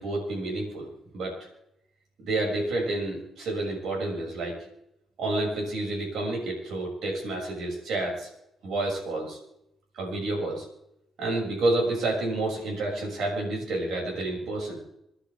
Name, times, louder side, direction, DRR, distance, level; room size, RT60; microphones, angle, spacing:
voice 1, 0.0-1.4 2.2-4.6 5.2-8.3 8.6-9.4 9.9-10.6 11.2-14.8, right 2 dB, 70° right, -2 dB, 6.6 m, -29 dB
28.5 x 10.0 x 3.5 m, 0.78 s
cardioid pair, 90°, 0 cm